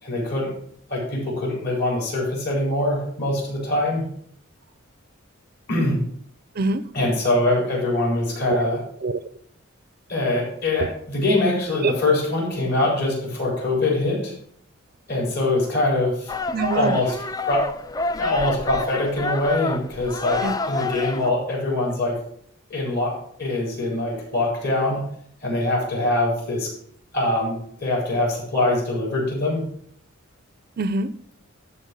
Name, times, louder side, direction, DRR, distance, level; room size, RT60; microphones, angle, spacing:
voice 1, 0.0-0.5 0.9-4.1 5.7-6.0 6.9-8.8 10.1-14.3 15.1-16.3 16.7-17.1 17.4-17.6 18.1-22.2 22.7-23.1 23.4-25.0 25.4-26.7 27.1-29.6, left 2 dB, 50° left, -2 dB, 4.4 m, -23 dB
voice 2, 6.5-6.9 8.5-9.2 10.8-10.9 11.8-11.9 16.5-17.0 20.4-20.6 30.8-31.2, right 3 dB, 45° right, 14 dB, 0.5 m, -25 dB
sound 1, 16.3-21.3, left 3 dB, 15° left, 0.3 m, -28 dB
12.0 x 4.2 x 6.3 m, 0.64 s
head